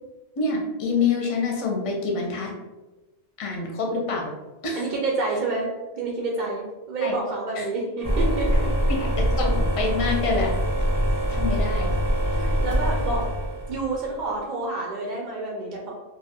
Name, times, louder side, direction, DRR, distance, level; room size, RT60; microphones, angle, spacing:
voice 1, 0.4-2.5 3.4-4.3 4.6-4.8 7.0-7.1 7.6-7.7 9.0-10.5 11.3-11.9, left 4 dB, 45° left, 0 dB, 0.5 m, -26 dB
voice 2, 4.8-5.7 5.9-8.7 12.3-13.2 13.7-15.9, right 3 dB, 60° right, -2 dB, 0.5 m, -28 dB
sound 1, 8.0-14.0, equal, 20° right, 0.8 m, -24 dB
2.3 x 2.3 x 3.4 m, 1.1 s
omnidirectional pair, 1.1 m